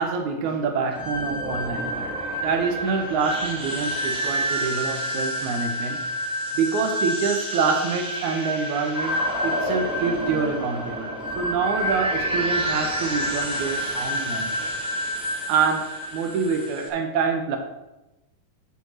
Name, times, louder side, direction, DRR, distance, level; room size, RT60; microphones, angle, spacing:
voice 1, 0.0-2.2 2.4-9.2 9.4-11.1 11.4-14.7 15.5-17.6, right 5 dB, 80° right, 4 dB, 2.3 m, -26 dB
sound 1, 0.9-16.9, equal, 5° right, 1.1 m, -28 dB
9.8 x 4.7 x 6.1 m, 0.97 s
omnidirectional pair, 3.4 m